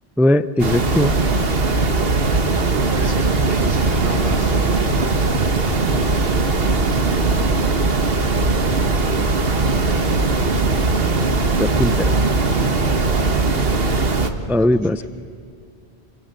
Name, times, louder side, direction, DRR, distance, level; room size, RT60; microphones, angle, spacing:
voice 1, 0.2-1.2 11.6-12.1 14.5-15.0, left 1 dB, 5° right, 14 dB, 0.3 m, -18 dB
sound 1, 0.6-14.3, right 3 dB, 65° right, 1.7 m, -19 dB
voice 2, 2.5-4.9 6.8-7.9 12.1-12.2 12.9-13.5, right 1 dB, 80° right, -5 dB, 4.1 m, -35 dB
28.0 x 25.0 x 8.1 m, 2.2 s
omnidirectional pair, 1.1 m